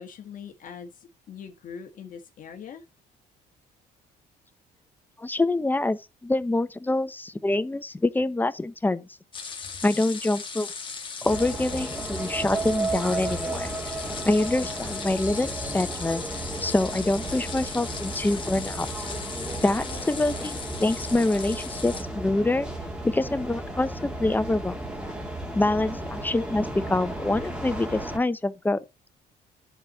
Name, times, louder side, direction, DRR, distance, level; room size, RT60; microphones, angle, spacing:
voice 1, 0.0-2.8 9.6-9.8, left 7 dB, 55° left, 1.5 m, -42 dB
voice 2, 5.2-9.1 9.8-10.7 11.2-13.7 14.2-16.2 16.6-18.9 19.6-22.7 23.0-24.7 25.5-28.8, left 2 dB, 10° left, 0.8 m, -25 dB
sound 1, 9.3-22.0, left 5 dB, 30° left, 2.3 m, -37 dB
sound 2, 11.3-28.2, right 2 dB, 5° right, 2.5 m, -34 dB
11.0 x 4.3 x 7.2 m
cardioid pair, 110°, 17 cm